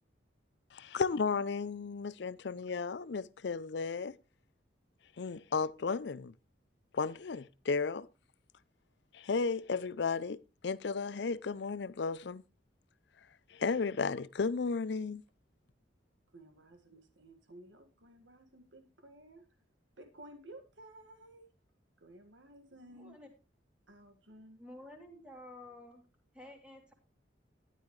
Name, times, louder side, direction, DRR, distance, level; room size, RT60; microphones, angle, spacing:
voice 1, 0.7-4.2 5.2-6.3 6.9-8.1 9.1-12.4 13.5-15.2, left 4 dB, 65° left, 0.5 m, -34 dB
voice 2, 16.3-19.5 20.0-21.4 22.0-23.2 23.9-24.6, right 1 dB, 80° right, 1.9 m, -55 dB
voice 3, 22.9-23.3 24.6-26.0 26.3-26.9, left 1 dB, 5° right, 2.9 m, -51 dB
13.0 x 11.0 x 3.2 m
head